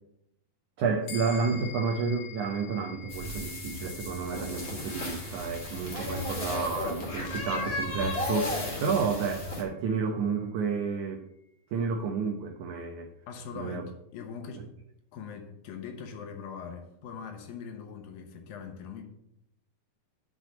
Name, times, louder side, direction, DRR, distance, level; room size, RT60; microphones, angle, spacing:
voice 1, 0.8-11.2 11.7-13.1 13.5-13.8, right 5 dB, 80° right, 1.7 m, -31 dB
sound 1, 1.1-10.8, left 7 dB, 90° left, 3.6 m, -48 dB
sound 2, 3.1-9.6, left 2 dB, 20° left, 2.2 m, -35 dB
sound 3, 3.2-8.3, left 1 dB, 50° left, 1.1 m, -51 dB
voice 2, 13.3-14.7 15.1-19.0, left 6 dB, 70° left, 2.6 m, -41 dB
6.8 x 6.2 x 7.6 m
omnidirectional pair, 4.6 m